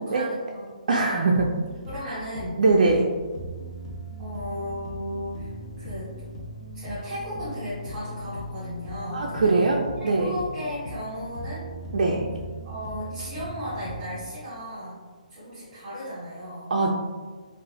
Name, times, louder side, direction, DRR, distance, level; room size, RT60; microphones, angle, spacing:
voice 1, 0.0-0.7 1.9-2.6 4.2-6.1 6.7-9.5 10.0-11.6 12.6-15.0 15.3-16.7, equal, 25° right, -11 dB, 1.4 m, -35 dB
voice 2, 0.9-1.5 2.0-2.2 2.6-3.1 9.1-10.3 11.9-12.3 16.7-16.9, right 3 dB, 65° right, -2 dB, 0.4 m, -22 dB
sound 1, 1.0-14.2, equal, 40° left, 0.6 m, -39 dB
3.9 x 2.4 x 2.3 m, 1.5 s
figure-of-eight pair, 140°, 4 cm